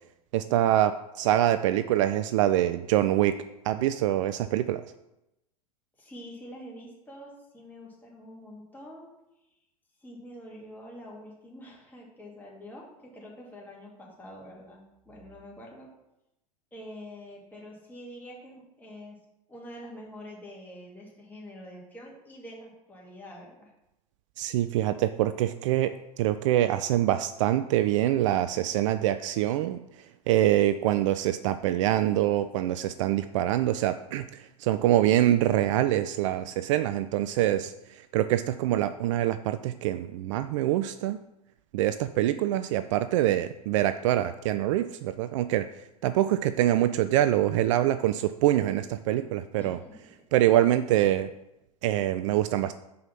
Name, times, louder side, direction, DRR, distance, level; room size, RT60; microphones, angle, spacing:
voice 1, 0.3-3.4 3.6-4.8 24.4-29.8 30.3-41.2 41.7-45.7 46.0-49.8 50.3-51.3 51.8-52.7, right 13 dB, 55° right, 11 dB, 0.4 m, -25 dB
voice 2, 6.0-9.1 10.0-15.9 16.7-19.2 19.5-23.7 49.6-50.1, equal, 10° left, -3 dB, 2.4 m, -46 dB
5.5 x 4.9 x 5.8 m, 0.90 s
figure-of-eight pair, 90°, 20 cm